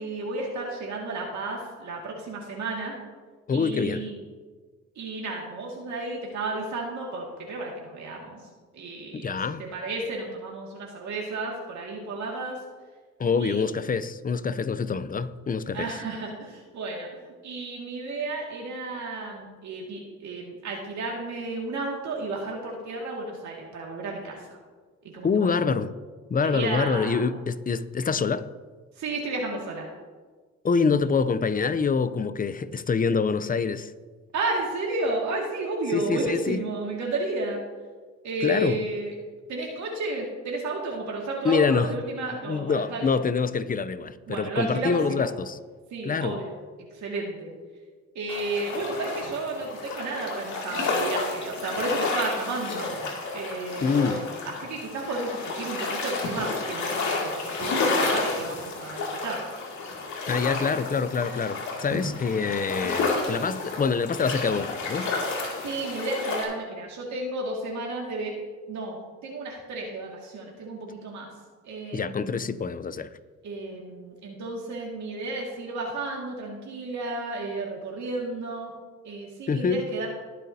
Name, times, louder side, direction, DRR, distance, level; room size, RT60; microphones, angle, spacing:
voice 1, 0.0-3.0 3.5-4.2 5.0-8.4 8.7-12.6 13.4-13.7 15.7-24.6 25.0-25.6 26.4-27.2 29.0-29.9 34.3-37.6 38.2-39.1 39.5-43.1 44.3-45.3 45.9-46.5 46.9-47.5 48.1-52.9 53.3-59.4 65.6-71.3 71.6-72.4 73.4-78.7 79.0-80.1, right 2 dB, 70° right, 2.1 m, -32 dB
voice 2, 3.5-4.0 9.1-9.6 13.2-15.9 25.2-25.9 26.3-28.5 30.6-33.9 35.9-36.6 38.4-38.8 41.4-41.9 42.5-45.6 46.0-46.4 53.8-54.2 60.3-65.1 71.9-73.1 79.5-79.8, left 5 dB, 30° left, 0.5 m, -26 dB
sound 1, 48.3-66.4, left 3 dB, 70° left, 2.5 m, -31 dB
19.5 x 7.6 x 2.8 m
cardioid pair, 90°, 30 cm